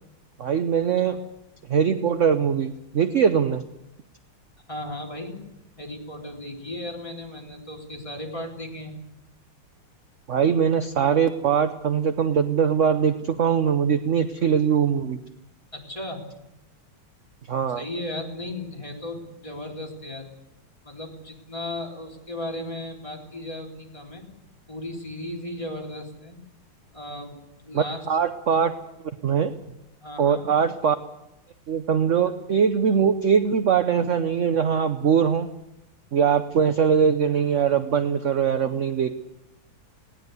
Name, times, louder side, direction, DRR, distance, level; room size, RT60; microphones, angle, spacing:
voice 1, 0.4-1.2 1.7-3.6 10.3-15.2 17.5-17.8 27.7-28.7 29.2-29.5 30.2-31.0 31.7-35.5 36.1-39.1, right 7 dB, 55° right, 10 dB, 0.9 m, -22 dB
voice 2, 4.7-5.4 5.8-9.0 15.7-16.2 17.7-20.3 20.8-24.3 24.7-26.4 26.9-28.0 30.0-30.5, left 1 dB, 15° left, -1 dB, 4.0 m, -35 dB
19.5 x 18.0 x 8.2 m, 0.88 s
omnidirectional pair, 2.2 m